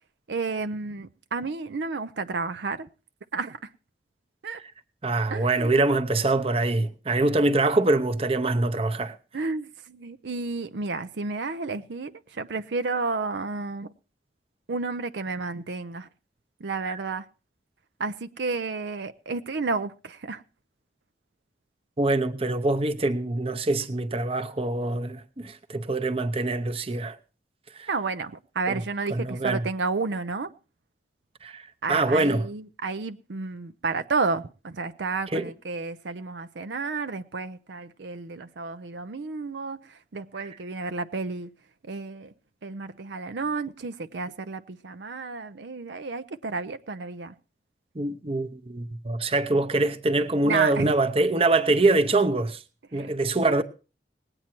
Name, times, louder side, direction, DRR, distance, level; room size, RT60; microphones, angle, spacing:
voice 1, 0.3-2.9 3.3-3.6 4.4-4.6 5.3-5.8 9.3-13.9 14.7-16.1 16.6-17.2 18.0-20.4 27.9-30.5 31.8-39.8 40.1-41.5 41.8-42.3 42.6-47.3 50.4-50.9 53.0-53.1, right 4 dB, 75° right, 0.6 m, -31 dB
voice 2, 5.0-9.2 16.8-17.0 22.0-27.2 27.8-27.9 28.7-28.8 29.1-29.7 31.4-31.6 31.9-32.5 35.3-35.4 47.9-52.6 52.9-53.6, right 2 dB, 30° right, 0.8 m, -24 dB
19.0 x 8.9 x 4.4 m
head